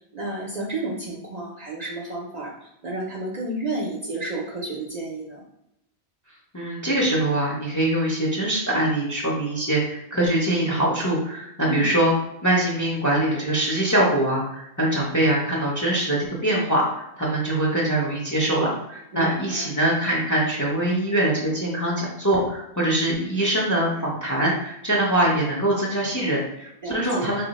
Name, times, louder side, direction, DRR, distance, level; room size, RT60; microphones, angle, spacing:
voice 1, 0.0-5.4 11.7-11.9 19.1-19.7 26.8-27.3, right 2 dB, 45° right, -3 dB, 0.6 m, -31 dB
voice 2, 6.5-12.1 12.4-16.8 17.2-27.5, right 1 dB, 20° left, -3 dB, 0.5 m, -23 dB
2.7 x 2.1 x 4.0 m, 0.81 s
omnidirectional pair, 1.1 m